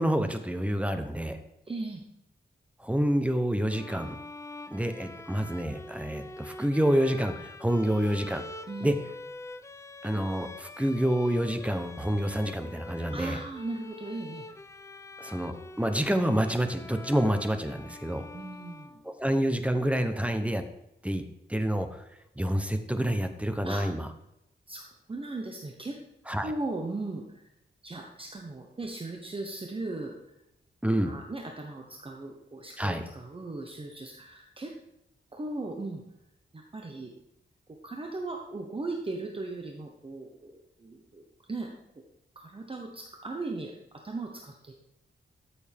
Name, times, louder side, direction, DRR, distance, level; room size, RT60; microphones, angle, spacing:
voice 1, 0.0-1.4 2.8-4.2 4.7-8.4 8.8-8.9 10.0-13.4 15.2-18.3 19.0-20.6 21.0-21.2 21.5-22.0 22.4-24.1 26.3-26.5 30.8-31.2 32.8-33.0, right 1 dB, 5° right, 8 dB, 0.8 m, -28 dB
voice 2, 1.7-2.0 8.7-8.9 13.1-14.5 17.8-17.9 18.3-19.0 23.6-23.8 24.7-26.0 26.4-27.5 27.8-30.1 31.1-34.7 35.3-36.0 36.5-37.1 37.8-41.2 41.5-41.7 42.3-43.7 44.0-44.7, right 2 dB, 30° right, 1 dB, 1.1 m, -37 dB
sound 1, 3.7-19.3, left 2 dB, 15° left, 0.5 m, -45 dB
13.0 x 7.1 x 3.5 m, 0.84 s
wide cardioid pair, 125°, 19 cm